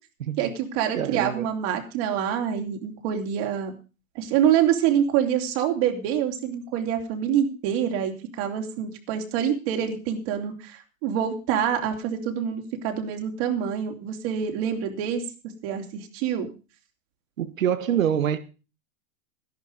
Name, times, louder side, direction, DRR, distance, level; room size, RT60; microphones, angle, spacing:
voice 1, 0.4-3.7 4.1-15.2 15.6-16.5, right 9 dB, 50° right, 3.4 m, -26 dB
voice 2, 1.0-1.5 17.4-18.4, right 9 dB, 75° right, 1.7 m, -25 dB
13.0 x 11.0 x 5.2 m
hypercardioid pair, 115°, 40 cm